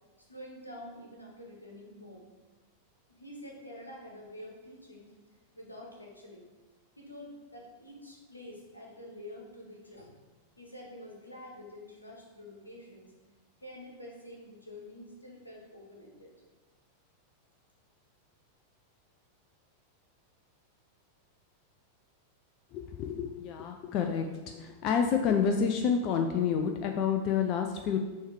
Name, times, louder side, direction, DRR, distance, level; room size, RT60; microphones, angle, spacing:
voice 1, 0.3-2.3 3.2-5.1 5.5-6.5 7.0-10.2 10.6-13.1 13.6-16.3, left 1 dB, 85° left, -2 dB, 1.2 m, -47 dB
voice 2, 22.7-28.0, left 7 dB, 40° left, 4 dB, 0.4 m, -29 dB
6.3 x 3.2 x 4.8 m, 1.2 s
figure-of-eight pair, 90°, 0 cm